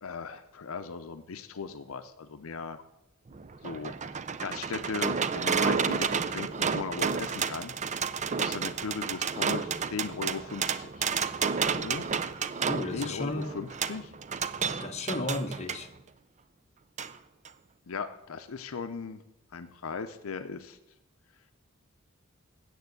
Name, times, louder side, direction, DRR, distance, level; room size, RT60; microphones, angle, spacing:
voice 1, 0.0-2.8 3.6-7.7 8.3-11.1 11.6-12.1 12.9-14.1 17.9-19.2 19.5-20.8, left 5 dB, 75° left, 9 dB, 0.6 m, -38 dB
sound 1, 3.3-15.8 17.0-17.1 17.5-17.6, right 6 dB, 35° right, 0.5 m, -31 dB
voice 2, 12.6-13.6 14.8-15.9, left 2 dB, 30° left, 4 dB, 1.1 m, -33 dB
9.2 x 8.0 x 8.1 m, 0.88 s
head